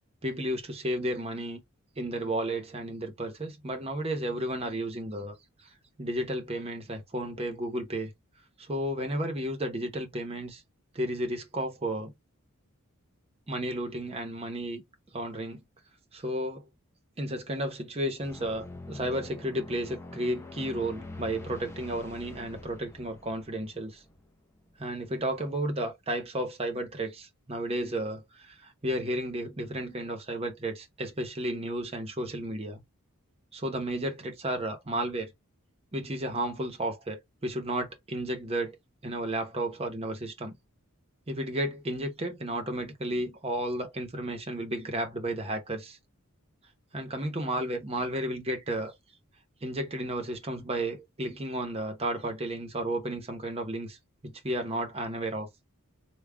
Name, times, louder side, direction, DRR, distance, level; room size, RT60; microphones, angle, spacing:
voice 1, 0.2-1.6 2.0-8.1 8.6-10.6 10.9-12.1 13.5-14.8 15.1-15.6 16.1-16.6 17.2-24.0 24.8-32.8 33.5-35.3 35.9-38.8 39.0-40.6 41.3-46.0 46.9-48.9 49.6-54.0 54.2-55.5, right 1 dB, 25° right, 0.8 m, -33 dB
sound 1, 18.2-24.9, left 2 dB, 10° left, 0.6 m, -45 dB
3.5 x 2.3 x 3.3 m
head